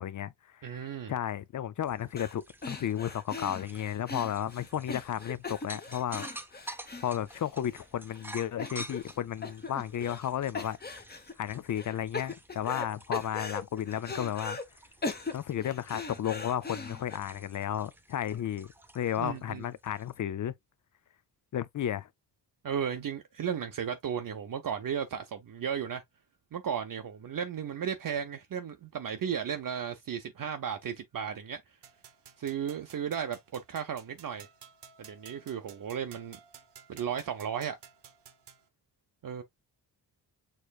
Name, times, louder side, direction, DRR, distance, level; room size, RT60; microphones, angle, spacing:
voice 1, 0.0-6.3 7.0-10.8 11.4-14.6 15.3-20.5 21.5-22.1, left 10 dB, 45° left, 0.5 m, -33 dB
voice 2, 0.6-1.1 19.2-19.6 22.6-26.0 26.5-31.6 32.4-34.5 35.0-36.4 36.9-37.8 39.2-39.4, right 8 dB, 50° right, 0.7 m, -35 dB
sound 1, 1.8-20.2, right 1 dB, 5° right, 0.6 m, -50 dB
sound 2, 2.2-2.4 2.6-7.8 8.1-8.2 8.6-9.2 9.4-10.3 10.5-11.3 11.8-12.9 13.1-14.6 15.0-17.2, left 3 dB, 20° left, 0.9 m, -39 dB
sound 3, 31.8-38.7, right 8 dB, 70° right, 1.0 m, -54 dB
6.6 x 3.1 x 2.3 m
wide cardioid pair, 125°, 43 cm